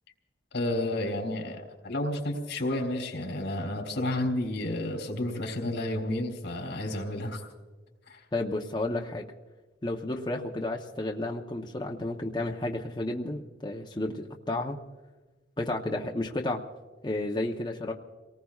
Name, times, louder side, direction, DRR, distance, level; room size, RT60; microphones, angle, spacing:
voice 1, 0.5-7.4 8.1-8.2, left 1 dB, 75° left, 3 dB, 3.4 m, -31 dB
voice 2, 8.3-9.2 9.8-14.8 15.6-16.6 17.0-17.9, left 2 dB, 25° left, 1 dB, 0.8 m, -32 dB
30.0 x 19.0 x 2.4 m, 1.3 s
head